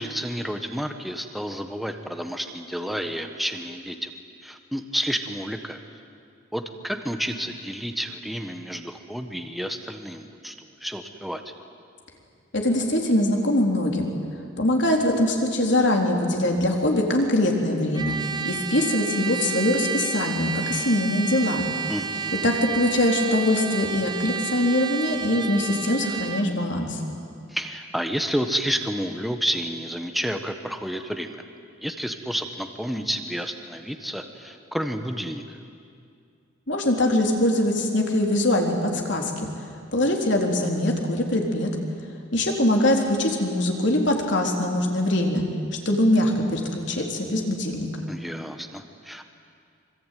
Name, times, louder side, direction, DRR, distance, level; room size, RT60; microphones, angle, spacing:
voice 1, 0.0-4.1 4.4-5.8 6.5-11.4 21.9-22.5 27.5-31.4 31.8-35.6 48.1-49.2, equal, ahead, 6 dB, 1.3 m, -30 dB
voice 2, 12.5-14.1 14.6-18.1 18.4-21.6 22.4-27.0 36.7-39.5 39.9-41.7 42.3-45.4 45.9-48.1, left 1 dB, 60° left, 1 dB, 3.8 m, -22 dB
Trumpet, 17.9-26.5, right 6 dB, 20° right, 0.8 m, -31 dB
25.5 x 24.5 x 9.4 m, 2.3 s
head